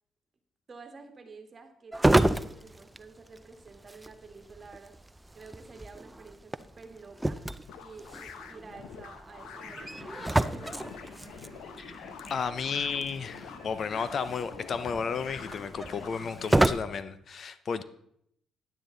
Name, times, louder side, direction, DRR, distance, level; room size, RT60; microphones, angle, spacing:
voice 1, 0.7-5.0 5.3-7.4 7.8-10.9, right 4 dB, 35° right, 6 dB, 1.5 m, -50 dB
sound 1, 1.9-16.7, right 1 dB, 10° right, 0.4 m, -31 dB
sound 2, 7.7-16.6, left 8 dB, 85° left, 0.7 m, -47 dB
sound 3, 9.6-16.7, left 2 dB, 65° left, 2.5 m, -49 dB
voice 2, 11.8-17.8, left 6 dB, 50° left, 13 dB, 0.5 m, -33 dB
10.0 x 9.0 x 3.8 m, 0.72 s
cardioid pair, 95°, 0 cm